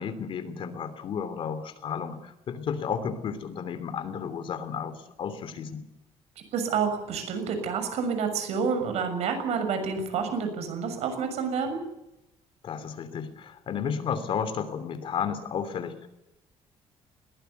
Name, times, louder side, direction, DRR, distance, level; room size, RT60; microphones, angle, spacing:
voice 1, 0.0-5.8 12.6-16.1, left 7 dB, 50° left, 11 dB, 3.0 m, -33 dB
voice 2, 6.5-11.8, right 6 dB, 75° right, 7 dB, 6.5 m, -29 dB
21.0 x 19.5 x 8.3 m, 0.91 s
cardioid pair, 150°, 11 cm